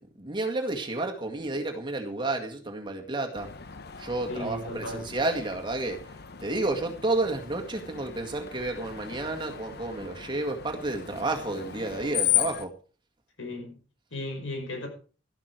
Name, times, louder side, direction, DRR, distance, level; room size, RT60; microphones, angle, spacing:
voice 1, 0.2-3.5 4.0-6.0 6.4-12.7, right 2 dB, 25° right, 2.0 m, -31 dB
Screech, 3.4-12.7, left 11 dB, 55° left, 1.0 m, -35 dB
voice 2, 4.3-5.1 13.4-13.8 14.1-14.9, left 1 dB, 75° left, 5.2 m, -35 dB
13.5 x 11.5 x 4.7 m
head